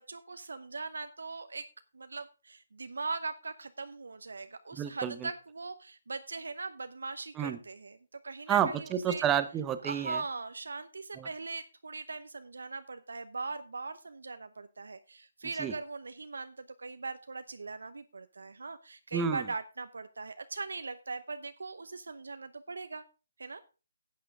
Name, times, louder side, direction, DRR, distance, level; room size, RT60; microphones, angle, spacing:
voice 1, 0.0-1.7 1.9-8.0 8.2-9.2 9.8-23.0 23.4-23.6, right 3 dB, 80° right, 10 dB, 0.8 m, -40 dB
voice 2, 4.7-5.3 7.3-7.6 8.5-10.2 11.2-11.3 15.6-15.7 19.1-19.5, right 9 dB, 15° right, 11 dB, 0.8 m, -30 dB
11.0 x 8.6 x 3.7 m, 0.32 s
hypercardioid pair, 150°, 0 cm